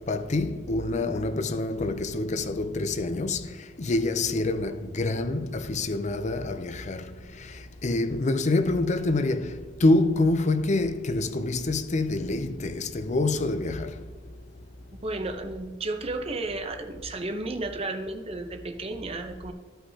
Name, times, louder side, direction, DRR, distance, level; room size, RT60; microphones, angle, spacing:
voice 1, 0.1-3.5 3.8-7.1 7.8-9.5 9.8-13.9, left 2 dB, 35° left, 0.6 m, -26 dB
voice 2, 15.0-19.5, right 2 dB, 30° right, 0.8 m, -33 dB
14.5 x 5.6 x 2.8 m
head